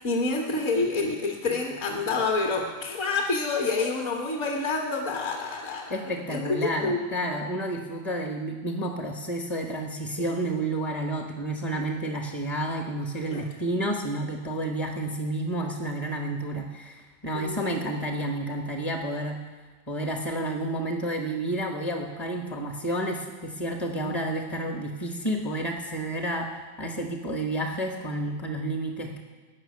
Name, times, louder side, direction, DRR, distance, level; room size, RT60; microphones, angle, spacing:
voice 1, 0.0-7.1 10.2-10.3 13.3-13.4 17.3-17.7 24.0-24.1, left 3 dB, 45° left, 1 dB, 1.4 m, -28 dB
voice 2, 5.9-19.4 19.9-29.2, right 1 dB, 20° left, 3 dB, 0.8 m, -30 dB
15.0 x 6.4 x 9.6 m, 1.3 s
omnidirectional pair, 2.1 m